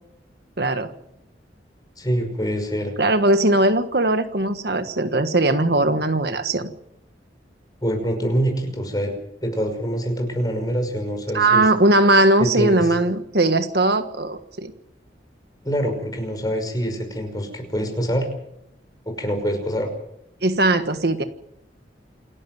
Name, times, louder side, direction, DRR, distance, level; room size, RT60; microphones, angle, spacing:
voice 1, 0.6-0.9 3.0-6.7 11.3-14.7 20.4-21.2, right 2 dB, 60° right, 9 dB, 1.5 m, -19 dB
voice 2, 2.0-2.9 7.8-9.1 9.4-11.7 12.4-12.9 15.6-18.3 19.1-19.9, equal, 20° left, 5 dB, 5.7 m, -25 dB
28.0 x 11.5 x 9.4 m, 0.79 s
head